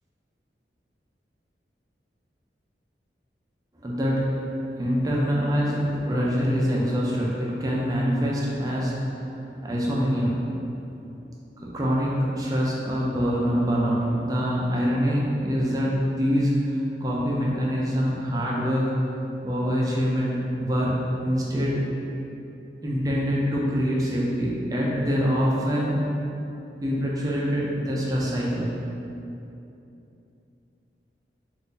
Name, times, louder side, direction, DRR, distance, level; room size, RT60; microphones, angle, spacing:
voice 1, 3.8-4.5 4.8-10.7 11.7-19.0 19.4-20.9 21.2-21.8 22.8-26.0 26.8-28.7 29.0-29.1, equal, 20° right, -5 dB, 0.4 m, -25 dB
2.6 x 2.5 x 3.6 m, 2.8 s
head